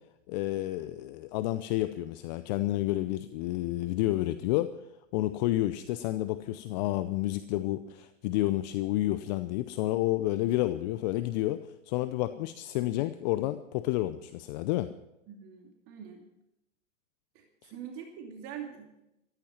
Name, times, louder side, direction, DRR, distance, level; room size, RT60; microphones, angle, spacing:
voice 1, 0.3-4.7 5.1-11.6 11.9-14.9 17.6-17.7, left 16 dB, 35° left, 12 dB, 0.7 m, -30 dB
voice 2, 15.3-16.2 17.3-19.0, right 8 dB, 35° right, 2 dB, 2.7 m, -44 dB
14.0 x 14.0 x 5.8 m, 0.85 s
hypercardioid pair, 120°, 38 cm